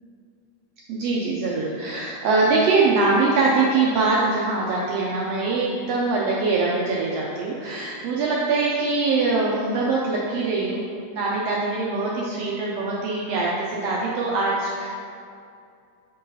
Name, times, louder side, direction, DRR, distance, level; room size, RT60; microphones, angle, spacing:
voice 1, 0.9-10.8 11.1-14.9, right 3 dB, 85° right, -4 dB, 1.4 m, -23 dB
7.4 x 3.8 x 4.0 m, 2.4 s
omnidirectional pair, 3.6 m